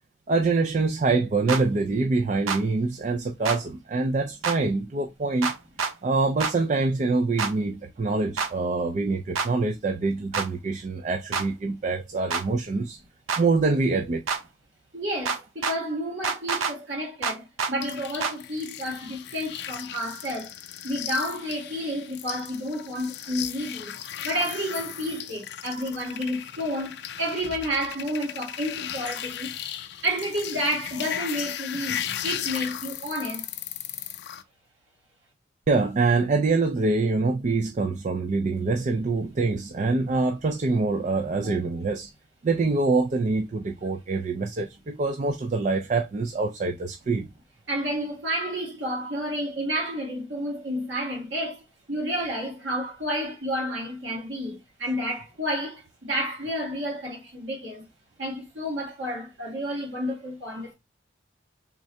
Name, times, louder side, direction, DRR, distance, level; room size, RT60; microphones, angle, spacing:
voice 1, 0.3-5.5 6.0-13.0 13.4-14.2 35.7-42.1 42.4-47.3, right 3 dB, 35° right, 0.3 m, -25 dB
sound 1, 1.5-1.6 2.5-2.6 3.5-3.6 4.4-4.6 5.4-5.9 6.4-6.5 7.4-7.5 8.4-8.5 9.4-9.5 10.3-10.5 11.3-11.5 12.3-12.4 13.3-13.4 14.3-14.4 15.3-15.8 16.2-16.7 17.2-17.7 18.2-18.4, right 5 dB, 85° right, 0.6 m, -27 dB
voice 2, 14.9-20.5 20.8-23.9 24.2-29.5 30.0-33.5 47.7-57.8 58.2-60.7, equal, 70° right, 1.9 m, -30 dB
sound 2, 17.8-34.4, left 10 dB, 55° left, 0.4 m, -36 dB
3.6 x 3.2 x 2.6 m
head